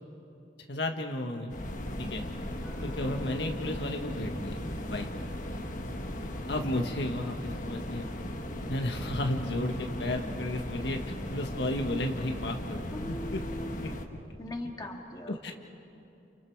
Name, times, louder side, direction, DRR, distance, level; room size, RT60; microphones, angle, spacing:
voice 1, 0.7-1.5 2.0-2.2 2.8-4.6 4.9-5.1 6.5-8.1 8.7-11.0 11.3-12.8 13.3-13.4 13.8-13.9 15.3-15.5, left 1 dB, 70° left, 3 dB, 1.4 m, -33 dB
sound 1, 1.5-14.1, left 1 dB, 45° left, 1.5 m, -37 dB
voice 2, 1.9-2.3 4.9-5.1 5.5-5.8 9.9-10.1 12.9-14.0 14.4-15.5, left 1 dB, 20° left, 1 dB, 2.0 m, -42 dB
sound 2, 2.6-8.7, left 1 dB, 5° right, 5.9 m, -52 dB
sound 3, 7.5-13.6, right 1 dB, 55° right, 1.8 m, -50 dB
30.0 x 29.5 x 4.7 m, 2.8 s
head